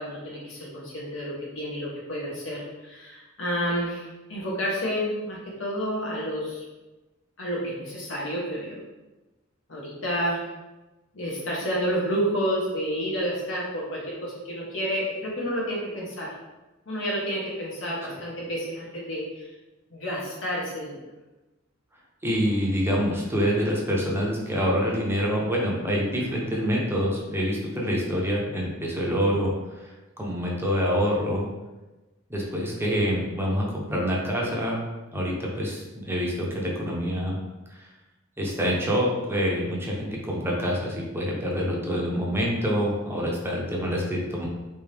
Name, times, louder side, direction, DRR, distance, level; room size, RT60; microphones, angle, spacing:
voice 1, 0.0-6.6 7.4-8.8 9.7-10.4 11.1-16.3 16.9-19.2 19.9-21.0, equal, 70° left, -4 dB, 1.1 m, -30 dB
voice 2, 22.2-29.9 30.2-31.5 32.3-34.8 35.1-37.4 37.7-37.9 38.4-44.5, equal, 10° right, -3 dB, 0.7 m, -26 dB
3.4 x 2.7 x 3.4 m, 1.1 s
head